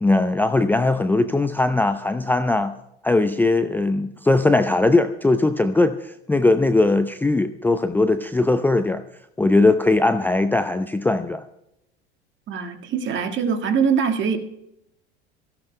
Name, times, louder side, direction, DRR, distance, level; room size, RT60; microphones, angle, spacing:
voice 1, 0.0-2.7 3.0-9.0 9.4-11.4, left 2 dB, 5° left, 10 dB, 0.6 m, -19 dB
voice 2, 12.5-14.4, right 6 dB, 40° right, 5 dB, 1.8 m, -22 dB
22.5 x 15.5 x 2.2 m, 0.83 s
figure-of-eight pair, 75°, 30 cm